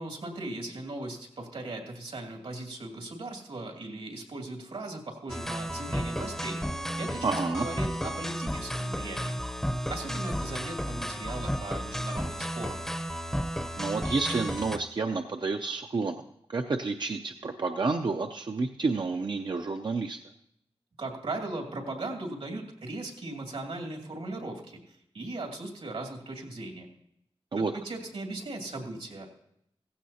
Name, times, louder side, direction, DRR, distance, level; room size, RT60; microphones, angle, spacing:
voice 1, 0.0-6.6 7.0-9.4 9.9-12.8 21.0-26.9 27.6-29.3, right 2 dB, 75° right, 1 dB, 2.4 m, -38 dB
sound 1, 5.3-14.8, equal, 5° left, 0.7 m, -33 dB
voice 2, 7.2-7.7 13.8-16.2 16.5-20.2 27.5-27.7, right 4 dB, 50° right, 5 dB, 0.5 m, -30 dB
16.0 x 15.5 x 2.8 m, 0.75 s
wide cardioid pair, 110°, 10 cm